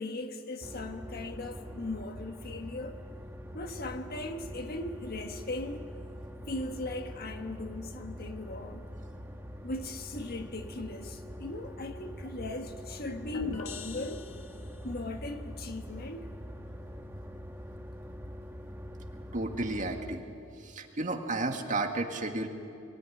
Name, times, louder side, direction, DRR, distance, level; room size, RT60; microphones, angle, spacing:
voice 1, 0.0-3.0 3.5-5.9 6.5-8.9 9.6-14.3 14.8-16.2, left 2 dB, 50° left, 1.5 m, -38 dB
sound 1, 0.6-20.2, equal, 10° right, 1.3 m, -44 dB
sound 2, 13.3-15.0, left 4 dB, 85° left, 1.3 m, -44 dB
voice 2, 19.3-20.2 20.6-22.5, right 2 dB, 40° right, 1.9 m, -32 dB
23.0 x 17.5 x 10.0 m
head